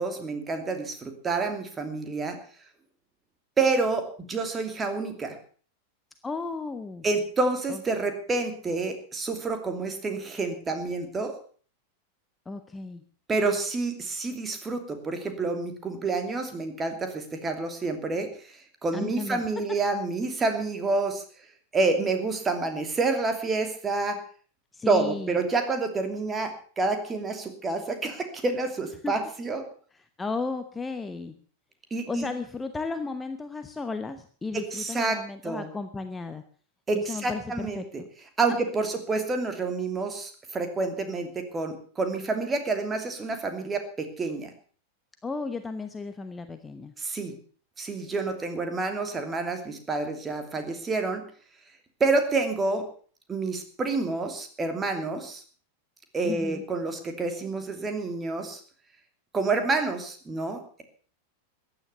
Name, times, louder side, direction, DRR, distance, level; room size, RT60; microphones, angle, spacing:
voice 1, 0.0-2.4 3.6-5.4 7.0-11.3 13.3-21.2 21.7-24.2 24.9-29.6 31.9-32.3 34.5-35.7 36.9-38.0 38.4-44.5 47.0-47.4 47.8-51.2 52.0-52.9 53.3-55.4 56.1-58.6 59.3-60.8, right 3 dB, 20° right, 6 dB, 2.8 m, -28 dB
voice 2, 6.2-7.0 7.7-7.8 12.5-13.0 18.9-19.4 24.7-25.4 29.0-29.1 29.9-31.3 32.1-36.4 36.9-38.1 45.2-46.9 56.2-56.6, left 4 dB, 15° left, 9 dB, 1.0 m, -34 dB
15.0 x 10.0 x 6.7 m, 0.43 s
figure-of-eight pair, 90°, 0 cm